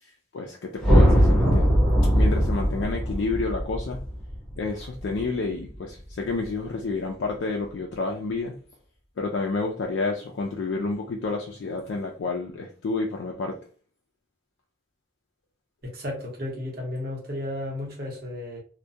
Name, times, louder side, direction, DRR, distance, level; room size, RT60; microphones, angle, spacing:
voice 1, 0.3-1.8 2.1-4.0 4.6-8.5 9.2-13.6, left 3 dB, 75° left, 0.4 m, -29 dB
sound 1, 0.8-5.2, equal, 5° left, 0.8 m, -20 dB
voice 2, 15.8-18.6, left 1 dB, 50° right, 0.9 m, -33 dB
2.2 x 2.2 x 2.6 m
head